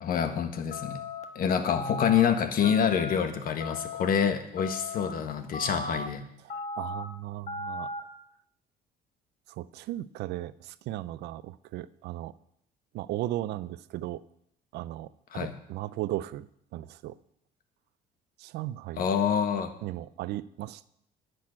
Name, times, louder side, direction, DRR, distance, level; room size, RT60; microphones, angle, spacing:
voice 1, 0.0-1.0 1.3-6.2 15.3-15.5 19.0-19.7, left 7 dB, 60° left, 8 dB, 1.5 m, -27 dB
sound 1, 0.7-1.2 1.7-2.2 2.6-3.2 3.6-4.1 4.6-5.1 5.5-6.1 6.5-7.0 7.5-8.0, left 2 dB, 40° left, 1.4 m, -36 dB
voice 2, 6.4-7.9 9.5-12.3 12.9-14.2 14.7-16.5 16.7-17.2 18.4-19.1 19.8-20.9, right 14 dB, 80° right, 17 dB, 0.5 m, -36 dB
10.5 x 6.6 x 8.7 m, 0.74 s
cardioid pair, 110°, 17 cm